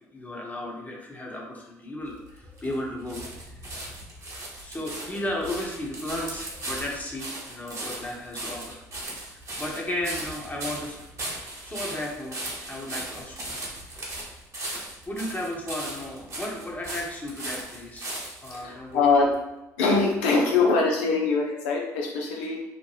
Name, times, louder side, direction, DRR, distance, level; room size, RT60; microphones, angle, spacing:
voice 1, 0.1-3.2 4.6-8.8 9.1-11.0 11.6-13.6 15.1-18.1 18.4-19.3, left 1 dB, 20° left, -2 dB, 1.0 m, -34 dB
sound 1, 2.1-18.6 19.3-19.4, right 1 dB, 40° right, 1.2 m, -37 dB
voice 2, 18.5-19.3 19.8-22.6, left 4 dB, 80° left, -1 dB, 0.4 m, -23 dB
2.8 x 2.1 x 3.2 m, 1.0 s
hypercardioid pair, 55°, 8 cm